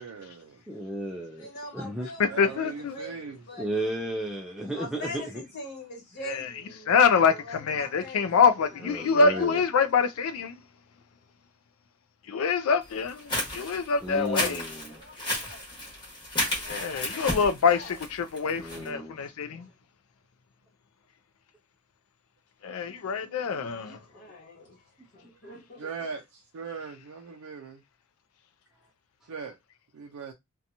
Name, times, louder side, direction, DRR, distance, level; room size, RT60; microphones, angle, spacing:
voice 1, 0.0-0.6 2.2-3.4 25.8-27.8 29.3-29.6 29.9-30.3, right 5 dB, 70° right, 0.4 m, -39 dB
voice 2, 0.7-1.5 1.7-2.1 3.6-5.2 8.9-9.6 14.0-15.0 18.6-19.2 23.9-24.0, right 1 dB, ahead, 0.3 m, -33 dB
voice 3, 1.4-3.8 4.6-9.6 14.9-15.6 16.4-18.0 23.8-24.8 25.1-25.9, left 1 dB, 50° left, 1.4 m, -43 dB
voice 4, 2.2-2.9 6.3-6.5 6.9-10.6 12.3-14.6 16.7-19.7 22.6-24.0, left 5 dB, 70° left, 0.4 m, -25 dB
sound 1, 13.0-18.9, left 1 dB, 20° left, 1.1 m, -32 dB
2.8 x 2.2 x 2.6 m
head